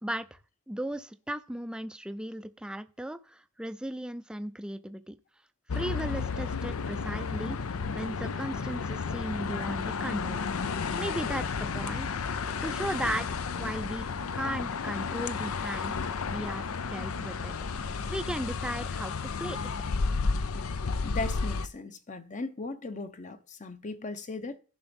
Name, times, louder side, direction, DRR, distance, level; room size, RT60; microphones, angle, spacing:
voice 1, 0.0-0.4 0.7-5.2 5.7-7.6 7.9-10.4 11.0-12.1 12.6-14.1 14.3-16.0 16.3-16.7 16.9-17.5 18.1-19.1 19.4-19.7, right 1 dB, 5° right, 0.4 m, -36 dB
sound 1, 5.7-21.7, left 5 dB, 80° left, 0.6 m, -32 dB
voice 2, 21.0-24.6, left 3 dB, 35° left, 0.8 m, -37 dB
10.5 x 5.8 x 5.3 m
head